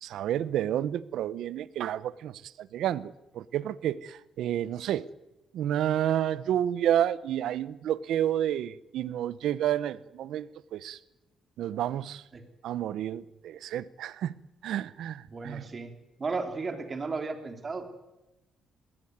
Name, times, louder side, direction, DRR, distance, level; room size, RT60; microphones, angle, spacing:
voice 1, 0.0-5.1 5.5-11.0 11.6-12.2 12.6-14.3 14.6-15.7, right 11 dB, 80° right, 18 dB, 0.9 m, -30 dB
voice 2, 15.3-15.9 16.2-17.9, right 4 dB, 35° right, 7 dB, 3.6 m, -34 dB
20.0 x 17.5 x 9.6 m, 0.97 s
cardioid pair, 90°, 0 cm